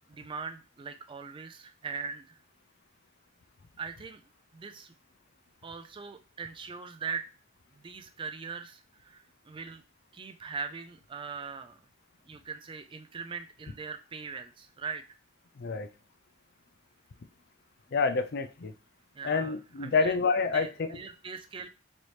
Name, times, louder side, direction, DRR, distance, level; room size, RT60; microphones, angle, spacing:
voice 1, 0.0-2.4 3.8-4.2 4.5-4.9 5.6-7.3 7.7-9.8 10.1-11.8 12.3-15.0 19.1-19.5 19.8-20.1 20.5-21.7, right 5 dB, 25° right, 8 dB, 0.3 m, -40 dB
voice 2, 15.6-15.9 17.9-18.7 19.2-21.0, left 4 dB, 50° left, 8 dB, 0.4 m, -28 dB
4.1 x 3.0 x 3.2 m, 0.31 s
head